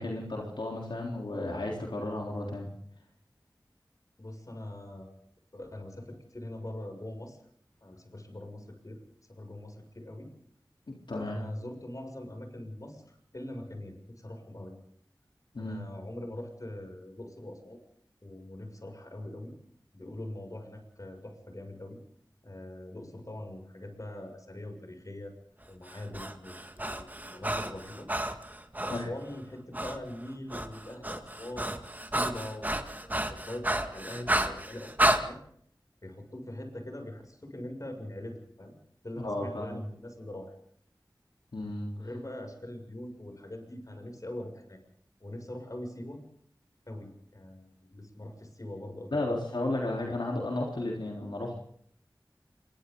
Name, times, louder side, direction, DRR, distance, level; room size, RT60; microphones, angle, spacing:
voice 1, 0.0-2.7 10.9-11.4 15.5-15.8 28.9-29.1 39.2-39.8 41.5-41.9 49.1-51.6, left 2 dB, 75° left, -1 dB, 3.8 m, -33 dB
voice 2, 4.2-5.1 5.5-7.4 7.8-9.0 9.3-10.3 11.2-14.8 15.6-17.8 18.2-19.5 19.9-22.0 22.4-25.3 25.7-28.1 28.8-31.8 32.1-35.4 36.0-38.7 39.0-40.5 42.0-44.8 45.2-46.2 46.9-49.4, left 1 dB, 45° left, 4 dB, 6.8 m, -42 dB
Breathing, 25.9-29.1 29.7-30.0 30.3-35.2, right 1 dB, 20° right, 2.1 m, -31 dB
28.0 x 23.5 x 4.0 m, 0.66 s
wide cardioid pair, 45°, 8 cm